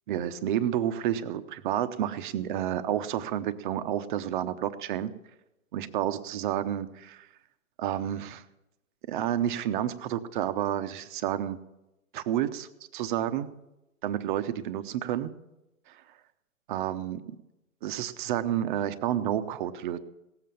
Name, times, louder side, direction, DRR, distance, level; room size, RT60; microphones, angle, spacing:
voice 1, 0.1-5.1 5.7-7.3 7.8-8.4 9.1-11.6 12.1-13.5 14.0-15.3 15.9-16.0 16.7-17.2 17.8-20.0, right 11 dB, 35° right, 12 dB, 0.8 m, -30 dB
18.0 x 7.7 x 7.0 m, 0.91 s
hypercardioid pair, 140°, 42 cm